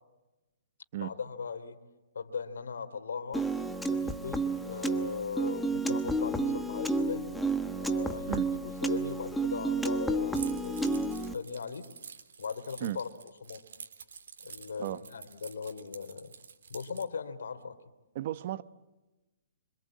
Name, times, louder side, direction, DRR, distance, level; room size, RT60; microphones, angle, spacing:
voice 1, 0.9-1.8 2.1-3.5 3.9-7.3 7.8-11.9 12.4-13.1 13.4-13.6 14.4-16.3 16.7-17.8, left 5 dB, 85° left, 2.9 m, -39 dB
Piano, 3.3-11.3, right 2 dB, ahead, 1.1 m, -31 dB
Keys jangling, 10.3-17.1, right 6 dB, 75° right, 3.3 m, -48 dB
voice 2, 18.1-18.6, right 14 dB, 40° right, 1.0 m, -34 dB
27.0 x 25.5 x 8.6 m
hypercardioid pair, 160°, 0 cm